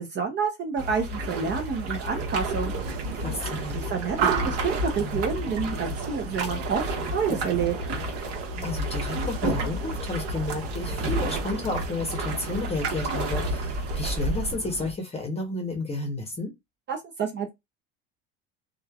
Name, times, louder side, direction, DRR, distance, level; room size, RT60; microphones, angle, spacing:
voice 1, 0.0-2.7 3.7-6.8 7.1-7.8 16.9-17.5, right 6 dB, 35° right, 0.6 m, -28 dB
sound 1, 0.8-14.5, right 1 dB, 50° right, 1.2 m, -31 dB
sound 2, 2.7-14.9, right 3 dB, 80° right, 0.8 m, -35 dB
voice 2, 3.2-3.8 8.6-16.5, left 2 dB, 20° left, 0.8 m, -32 dB
3.0 x 2.3 x 2.3 m
supercardioid pair, 110°, 30 cm